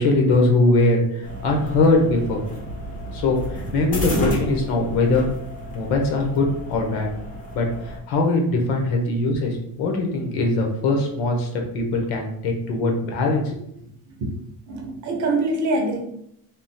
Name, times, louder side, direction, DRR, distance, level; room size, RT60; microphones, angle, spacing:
voice 1, 0.0-2.4 3.1-5.3 5.7-7.1 7.5-7.7 8.1-11.5 11.7-13.6, left 2 dB, 70° left, 2 dB, 1.0 m, -21 dB
sound 1, 1.2-8.0, equal, 20° left, 0.7 m, -31 dB
voice 2, 14.7-16.0, right 2 dB, 45° right, 1 dB, 0.8 m, -24 dB
3.6 x 2.3 x 4.2 m, 0.75 s
cardioid pair, 160°, 40 cm